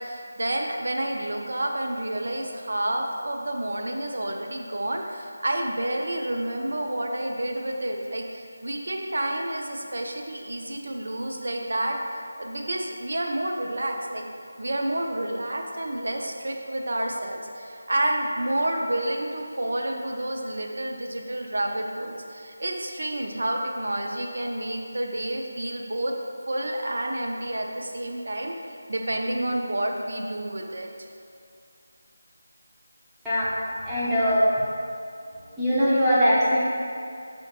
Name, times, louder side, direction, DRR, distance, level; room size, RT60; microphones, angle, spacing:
voice 1, 0.0-12.0 12.4-14.2 14.6-26.1 26.5-28.6 28.9-30.9, right 1 dB, 70° right, 1 dB, 0.4 m, -29 dB
voice 2, 33.8-34.5 35.6-36.6, equal, 5° right, -14 dB, 0.3 m, -21 dB
3.7 x 2.1 x 2.8 m, 2.4 s
figure-of-eight pair, 175°, 0 cm